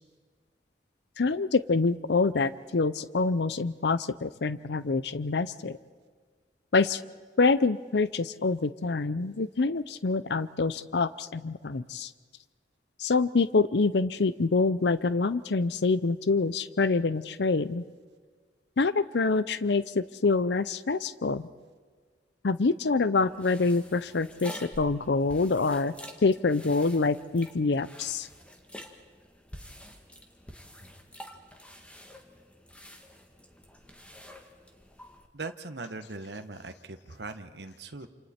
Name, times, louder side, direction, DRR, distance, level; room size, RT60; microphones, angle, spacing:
voice 1, 1.2-5.8 6.7-7.0 7.4-12.1 13.0-17.8 18.8-21.4 22.4-25.9 26.2-28.3, left 3 dB, 70° left, 15 dB, 0.6 m, -26 dB
sound 1, 23.2-35.3, equal, 5° left, 1.7 m, -48 dB
voice 2, 35.3-38.1, right 3 dB, 70° right, 7 dB, 1.2 m, -40 dB
28.5 x 28.0 x 4.4 m, 1.5 s
head